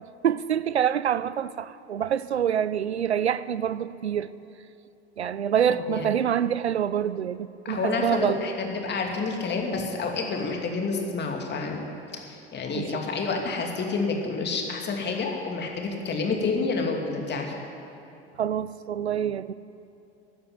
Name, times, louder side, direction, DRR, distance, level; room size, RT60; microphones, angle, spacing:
voice 1, 0.2-4.3 5.2-8.4 12.7-13.0 18.4-19.5, right 9 dB, 85° right, 17 dB, 0.5 m, -26 dB
voice 2, 5.7-6.0 7.7-11.9 12.3-17.5, left 4 dB, 35° left, 1 dB, 2.6 m, -29 dB
14.0 x 9.6 x 9.9 m, 2.8 s
figure-of-eight pair, 70°, 32 cm